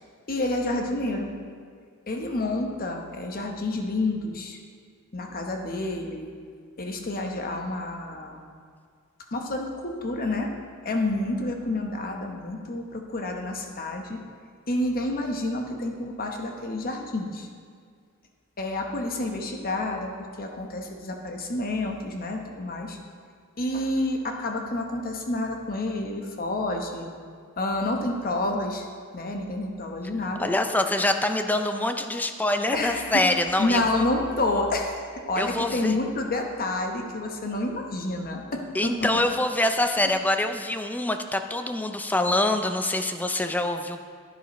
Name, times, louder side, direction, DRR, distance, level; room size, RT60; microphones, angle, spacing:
voice 1, 0.3-1.3 2.1-4.6 5.1-6.3 6.8-8.4 9.3-10.5 10.8-14.2 14.7-17.5 18.6-20.1 20.4-23.0 23.6-27.1 27.6-28.9 29.1-30.5 32.7-33.2 33.6-35.0 35.3-39.2, left 2 dB, 45° left, 3 dB, 1.0 m, -29 dB
voice 2, 30.4-34.1 35.4-36.0 38.7-44.0, left 1 dB, 10° left, 6 dB, 0.4 m, -25 dB
11.0 x 10.0 x 3.1 m, 2.1 s
head